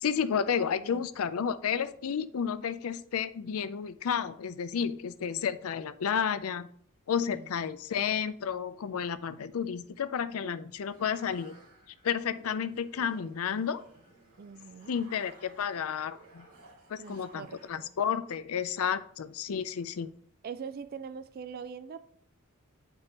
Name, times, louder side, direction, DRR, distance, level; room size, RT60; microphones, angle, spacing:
voice 1, 0.0-6.7 7.1-11.6 12.0-13.8 14.9-16.5 16.9-20.1, left 7 dB, 70° left, 14 dB, 0.4 m, -31 dB
sound 1, 10.4-17.7, right 3 dB, 85° right, 1.9 m, -56 dB
voice 2, 13.6-13.9 14.4-15.0 17.0-17.9 20.4-22.0, right 6 dB, 40° right, 12 dB, 0.3 m, -43 dB
9.5 x 4.5 x 2.9 m, 0.62 s
head